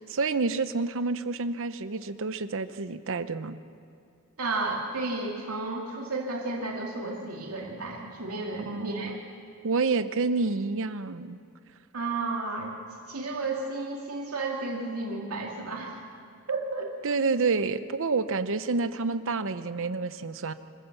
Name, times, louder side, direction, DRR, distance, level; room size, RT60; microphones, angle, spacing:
voice 1, 0.1-3.6 8.6-9.2 9.6-11.4 17.0-20.5, right 4 dB, 65° right, 12 dB, 0.8 m, -28 dB
voice 2, 4.4-9.2 11.9-12.7 13.1-16.0 16.5-16.9, right 3 dB, 90° right, -2 dB, 2.5 m, -32 dB
25.5 x 15.0 x 7.2 m, 2.4 s
head